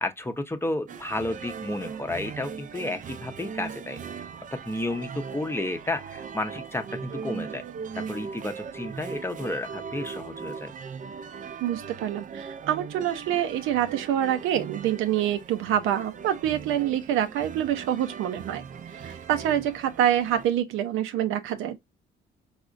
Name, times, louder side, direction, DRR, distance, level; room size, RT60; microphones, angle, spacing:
voice 1, 0.0-4.0 4.5-7.6 8.0-10.7, left 2 dB, 10° left, 0.6 m, -32 dB
sound 1, 0.9-20.5, right 6 dB, 40° right, 0.5 m, -39 dB
voice 2, 11.6-18.6 19.0-21.8, right 11 dB, 90° right, 0.6 m, -26 dB
4.8 x 2.1 x 2.5 m
cardioid pair, 90°, 20 cm